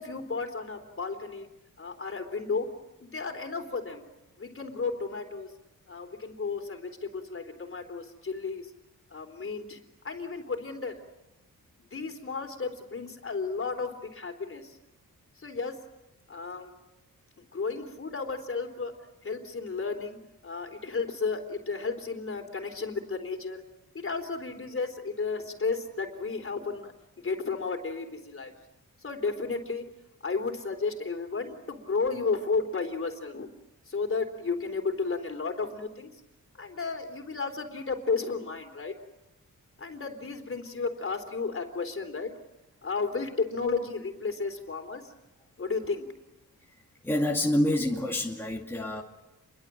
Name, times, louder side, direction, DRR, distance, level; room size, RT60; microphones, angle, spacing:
voice 1, 0.0-1.5 1.8-2.7 3.0-4.0 4.4-5.5 5.9-8.7 9.1-9.8 10.0-11.0 11.9-14.8 15.4-15.8 16.3-16.7 17.4-18.9 19.2-23.6 23.9-26.9 27.2-28.5 29.0-29.8 30.2-33.5 33.9-36.1 36.5-38.9 39.8-42.3 42.8-45.1 45.6-46.1, left 4 dB, 40° left, 6 dB, 3.6 m, -33 dB
voice 2, 47.0-49.0, left 1 dB, 5° left, -1 dB, 2.3 m, -27 dB
29.0 x 23.0 x 7.6 m, 0.97 s
wide cardioid pair, 115°, 35 cm